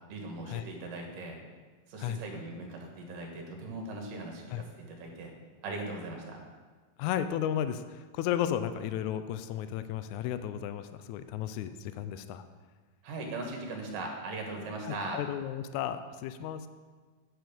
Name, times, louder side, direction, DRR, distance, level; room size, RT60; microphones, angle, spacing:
voice 1, 0.0-1.4 1.9-5.3 5.6-6.4 13.0-15.2, right 2 dB, 75° right, 1 dB, 3.1 m, -39 dB
voice 2, 7.0-7.8 8.1-12.4 14.9-16.7, left 10 dB, 80° left, 11 dB, 1.8 m, -33 dB
9.4 x 7.8 x 5.2 m, 1.4 s
omnidirectional pair, 3.8 m